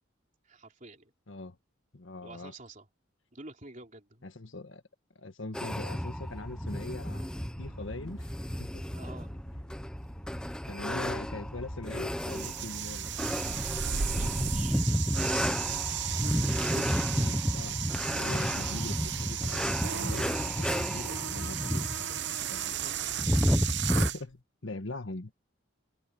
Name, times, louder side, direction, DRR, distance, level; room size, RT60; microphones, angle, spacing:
voice 1, 0.4-1.1 2.2-2.9 3.3-4.3 8.9-9.3 14.0-14.8 16.1-17.0 21.8-23.2, right 3 dB, 40° right, 3.4 m, -50 dB
voice 2, 1.9-2.5 4.2-4.8 5.1-8.3 8.6-8.8 10.7-13.1 17.1-17.8 18.1-21.9 22.5-22.8 23.6-25.4, left 2 dB, 75° left, 1.6 m, -42 dB
sound 1, 5.5-24.1, equal, 5° left, 1.0 m, -32 dB
sound 2, 6.2-19.9, equal, 20° left, 4.1 m, -45 dB
sound 3, 12.2-24.2, right 9 dB, 60° right, 1.0 m, -35 dB
head